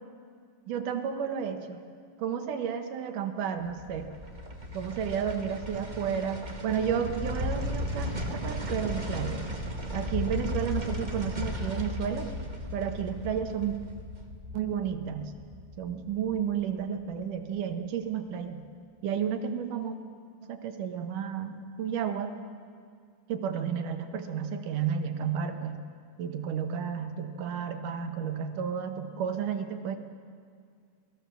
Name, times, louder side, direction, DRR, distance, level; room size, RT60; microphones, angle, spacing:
voice 1, 0.7-1.8 2.2-4.1 4.7-9.5 9.9-12.3 12.7-13.8 14.5-15.3 15.8-18.6 19.0-20.0 20.5-22.4 23.3-25.8 26.2-30.0, right 8 dB, 80° right, 7 dB, 2.8 m, -32 dB
sound 1, 3.6-16.8 17.1-17.2, left 1 dB, 20° right, 1.2 m, -36 dB
27.0 x 19.0 x 7.0 m, 2.2 s
omnidirectional pair, 3.7 m